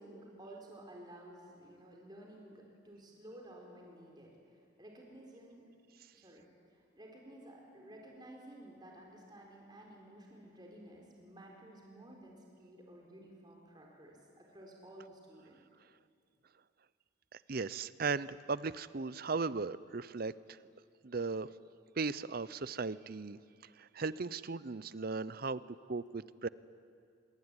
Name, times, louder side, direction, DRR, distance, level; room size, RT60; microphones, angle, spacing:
voice 1, 0.0-5.6 6.1-6.5 6.7-15.6, right 1 dB, 20° right, -1 dB, 4.2 m, -53 dB
voice 2, 17.5-20.3 21.0-21.5 22.0-23.4 23.8-25.6 25.9-26.5, right 4 dB, 50° right, 17 dB, 0.6 m, -37 dB
25.5 x 23.0 x 9.8 m, 2.3 s
head